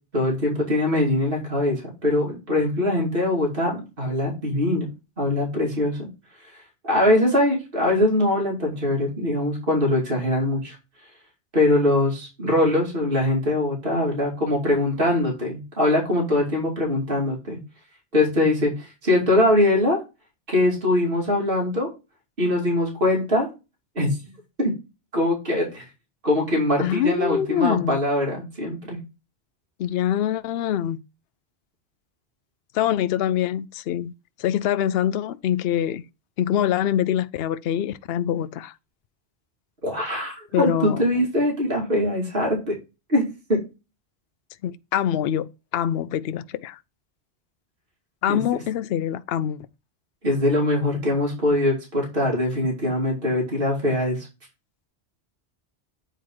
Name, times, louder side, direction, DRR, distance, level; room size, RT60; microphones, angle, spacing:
voice 1, 0.1-4.9 5.2-6.1 6.8-10.8 11.5-17.6 18.1-20.0 20.5-21.9 22.4-23.5 24.0-24.2 24.6-24.7 25.1-25.8 26.2-29.0 39.8-42.7 43.1-43.2 43.5-43.6 48.3-48.4 50.2-54.3, left 1 dB, 55° right, 2.8 m, -22 dB
voice 2, 26.8-28.0 29.8-31.0 32.7-34.1 34.4-36.0 36.4-38.7 40.5-41.0 44.6-46.8 48.2-49.6, left 10 dB, 65° left, 0.7 m, -24 dB
8.9 x 3.7 x 4.7 m
omnidirectional pair, 1.1 m